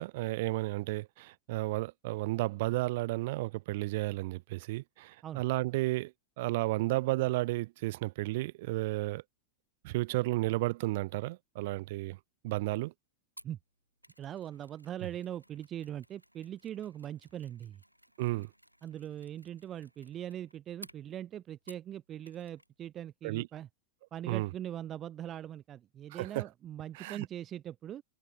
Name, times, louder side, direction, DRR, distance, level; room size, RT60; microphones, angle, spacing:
voice 1, 0.0-9.2 9.8-12.2 12.4-12.9 18.2-18.5 23.2-23.5 24.2-24.5 26.1-26.5 26.9-27.2, right 20 dB, 50° right, 1.3 m, -32 dB
Mechanisms, 13.4-22.0 22.2-22.7 23.0-23.1, equal, 90° right, 3.4 m, -58 dB
voice 2, 14.2-17.8 18.8-23.7 24.1-28.0, right 11 dB, 30° right, 0.6 m, -41 dB
figure-of-eight pair, 90°, 0 cm